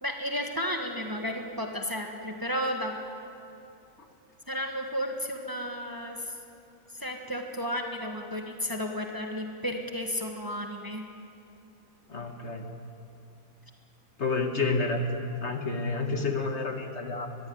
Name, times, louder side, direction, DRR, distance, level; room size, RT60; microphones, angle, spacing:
voice 1, 0.0-3.0 4.5-6.3 6.9-11.1, equal, 15° right, 3 dB, 1.5 m, -33 dB
voice 2, 12.1-12.6 14.2-15.0 15.4-17.4, left 3 dB, 50° left, 4 dB, 1.9 m, -29 dB
21.5 x 15.0 x 9.5 m, 2.7 s
omnidirectional pair, 1.5 m